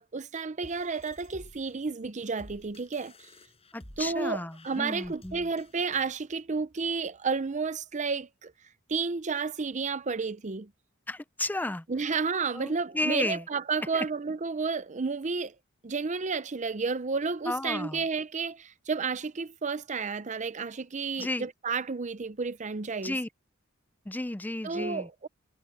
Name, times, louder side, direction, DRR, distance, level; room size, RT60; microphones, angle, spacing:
voice 1, 0.0-3.3 4.0-8.5 8.9-10.7 11.9-15.6 15.8-23.2 24.6-25.3, right 4 dB, 35° right, 0.7 m, -31 dB
sound 1, 0.6-6.2, left 1 dB, 30° left, 7.5 m, -53 dB
voice 2, 3.7-5.5 11.1-11.8 12.5-13.4 13.9-14.1 17.5-18.0 21.2-21.5 23.0-23.3 24.1-25.1, left 2 dB, 10° left, 0.5 m, -33 dB
head